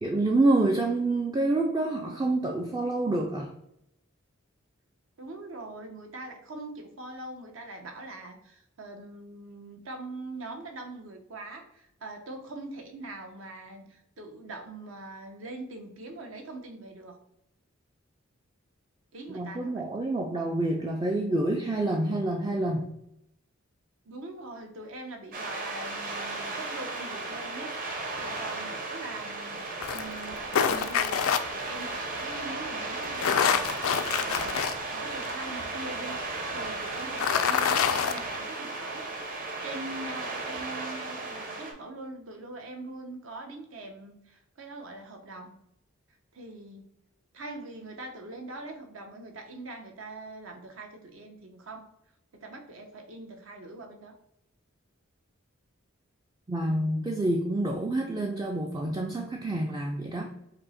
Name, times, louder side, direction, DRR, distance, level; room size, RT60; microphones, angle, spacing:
voice 1, 0.0-3.5 19.3-22.9 56.5-60.3, right 2 dB, 20° right, 1 dB, 0.3 m, -27 dB
voice 2, 5.2-17.2 19.1-19.9 24.1-29.6 29.9-39.0 39.6-45.6 46.3-46.9 47.3-51.9 52.3-54.2, right 2 dB, 70° right, 4 dB, 0.7 m, -43 dB
sound 1, 25.3-41.7, right 3 dB, 40° right, 0.9 m, -35 dB
sound 2, 29.8-31.4 33.0-34.7 35.2-35.3 37.0-38.2, left 7 dB, 85° left, 0.4 m, -26 dB
5.2 x 2.1 x 4.0 m, 0.79 s
head